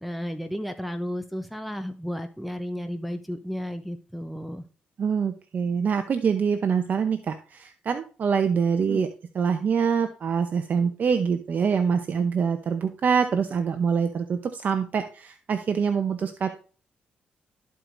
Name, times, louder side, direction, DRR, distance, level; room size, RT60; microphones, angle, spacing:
voice 1, 0.0-4.6 8.9-9.0, equal, ahead, 7 dB, 0.7 m, -33 dB
voice 2, 5.0-9.1 9.3-16.5, right 6 dB, 55° right, 7 dB, 0.7 m, -25 dB
13.0 x 4.6 x 2.6 m, 0.38 s
cardioid pair, 75°, 4 cm